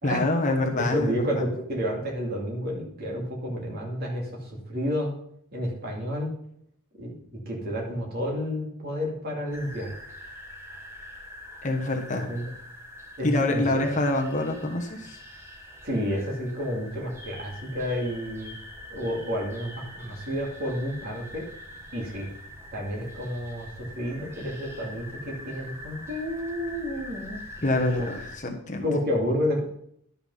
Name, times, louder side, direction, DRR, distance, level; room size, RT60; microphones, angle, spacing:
voice 1, 0.0-1.3 11.6-12.3 13.2-15.2 27.6-28.9, left 2 dB, 35° left, 2 dB, 1.2 m, -26 dB
voice 2, 0.9-5.1 5.5-6.3 7.0-7.1 7.5-9.9 12.1-12.5 13.2-13.6 15.8-18.5 18.9-21.4 21.9-22.3 22.7-28.1 28.8-29.6, equal, 45° right, -2 dB, 2.6 m, -30 dB
sound 1, 9.5-28.4, left 1 dB, 10° right, 1.2 m, -44 dB
11.0 x 5.7 x 5.6 m, 0.69 s
head